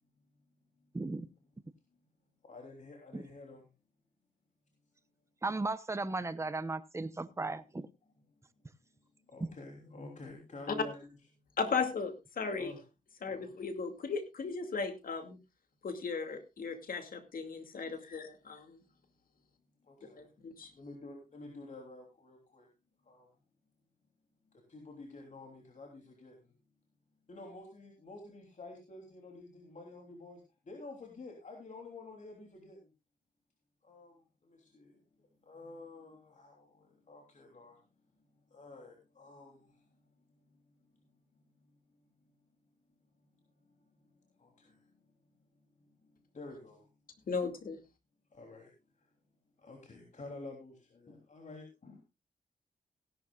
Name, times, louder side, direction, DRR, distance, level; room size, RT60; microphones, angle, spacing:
voice 1, 0.9-1.3 3.1-3.2 5.4-7.9, right 3 dB, 20° right, 13 dB, 0.9 m, -36 dB
voice 2, 2.4-3.7 9.3-11.1 12.6-12.8 13.2-13.5 17.9-18.1 19.9-20.3 20.7-22.7 23.1-23.3 24.7-26.4 27.3-30.4 30.7-32.8 33.8-34.2 34.5-34.9 35.4-37.8 38.5-39.7 44.4-44.7 46.3-46.8 48.3-48.7 49.6-52.0, left 2 dB, 55° left, 1 dB, 3.3 m, -49 dB
voice 3, 11.6-12.8 13.2-15.4 15.8-18.8 20.2-20.7 47.3-47.8, left 5 dB, 70° left, 7 dB, 2.4 m, -36 dB
17.0 x 11.5 x 2.4 m, 0.26 s
cardioid pair, 70°, 15 cm